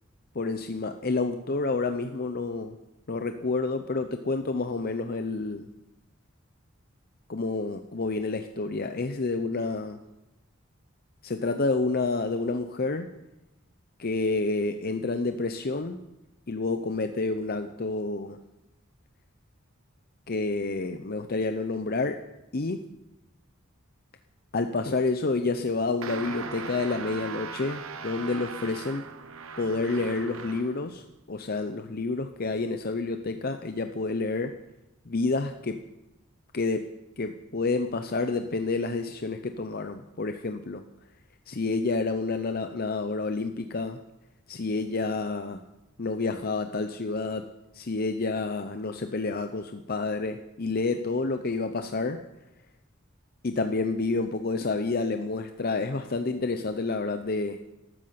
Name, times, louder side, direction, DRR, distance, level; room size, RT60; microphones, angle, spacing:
voice 1, 0.3-2.8 3.1-5.7 7.3-9.9 11.2-13.1 14.0-16.0 16.5-18.4 20.3-22.2 22.5-22.8 24.5-29.0 29.6-34.5 35.1-35.8 36.5-36.9 37.2-40.8 41.5-44.0 44.5-45.6 46.0-47.5 47.7-52.2 53.4-57.6, left 3 dB, 50° left, 7 dB, 0.7 m, -29 dB
sound 1, 26.0-30.8, right 5 dB, 90° right, 1.0 m, -39 dB
14.5 x 13.0 x 5.8 m, 0.96 s
head